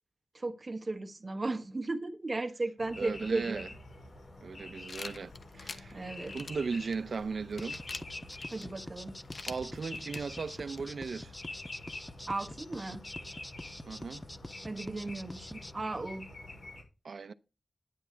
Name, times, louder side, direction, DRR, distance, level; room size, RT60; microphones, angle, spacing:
voice 1, 0.3-3.6 5.9-6.4 8.5-9.2 12.3-13.0 14.6-16.3, right 2 dB, 40° right, 1.4 m, -36 dB
sound 1, 2.8-16.8, left 2 dB, 90° left, 6.9 m, -47 dB
voice 2, 3.0-3.7 4.4-6.0 6.3-7.8 9.5-11.3 13.9-14.2 17.0-17.3, right 5 dB, 80° right, 0.7 m, -37 dB
sound 2, 4.9-10.9, left 4 dB, 70° left, 1.0 m, -47 dB
sound 3, 7.6-15.7, left 1 dB, 10° left, 0.5 m, -46 dB
10.5 x 10.0 x 4.5 m
wide cardioid pair, 90°, 0 cm